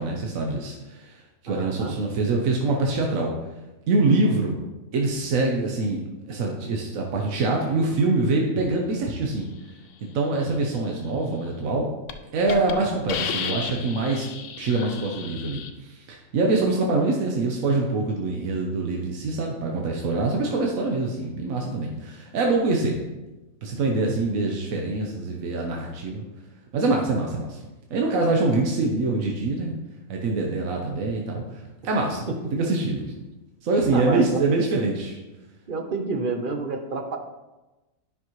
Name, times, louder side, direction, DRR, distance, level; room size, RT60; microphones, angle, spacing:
voice 1, 0.0-3.3 3.9-4.6 4.9-6.0 6.3-9.5 10.1-11.9 12.3-14.3 14.6-23.0 23.6-26.2 26.7-27.6 27.9-29.8 30.1-33.1 33.6-35.2, right 3 dB, 75° right, 0 dB, 1.3 m, -24 dB
voice 2, 1.5-2.0 32.3-32.4 33.9-34.4 35.7-37.2, right 3 dB, 45° right, 4 dB, 0.8 m, -29 dB
Hiss, 11.5-11.7 12.1-12.2 12.5-12.7 13.1-15.7, left 7 dB, 70° left, 1.0 m, -32 dB
9.9 x 5.9 x 3.1 m, 1.1 s
omnidirectional pair, 1.4 m